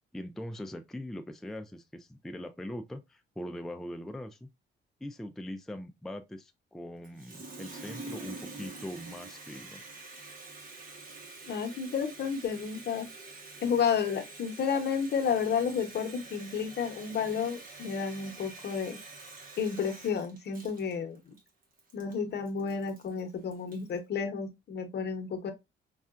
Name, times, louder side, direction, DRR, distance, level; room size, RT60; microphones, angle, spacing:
voice 1, 0.1-4.5 5.0-9.8, left 1 dB, ahead, 0.4 m, -41 dB
Water tap faucet, 7.0-24.0, right 3 dB, 45° right, 1.2 m, -47 dB
voice 2, 11.5-13.1 13.6-19.0 19.6-21.4 21.9-25.5, left 6 dB, 55° left, 0.9 m, -31 dB
5.3 x 2.4 x 2.4 m
cardioid pair, 90°, 20 cm